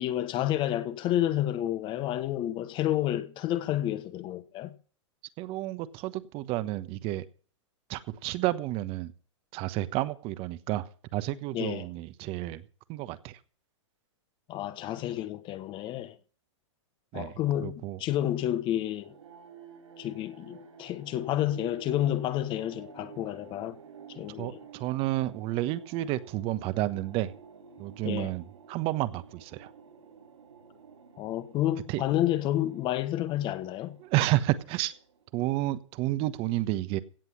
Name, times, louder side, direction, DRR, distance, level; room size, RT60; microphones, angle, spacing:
voice 1, 0.0-4.7 11.5-11.9 14.5-16.1 17.1-19.1 20.0-23.8 24.1-24.6 28.0-28.3 31.2-34.0, left 12 dB, 30° left, 1.2 m, -30 dB
voice 2, 5.4-7.2 7.9-9.1 9.5-12.6 12.9-13.4 17.1-17.3 17.6-18.0 24.4-27.3 27.8-29.7 31.9-32.0 34.0-34.9 35.3-37.0, right 16 dB, 35° right, 1.2 m, -31 dB
sound 1, 18.9-35.5, right 6 dB, 80° right, 4.6 m, -52 dB
16.5 x 7.6 x 7.3 m
hypercardioid pair, 125°, 16 cm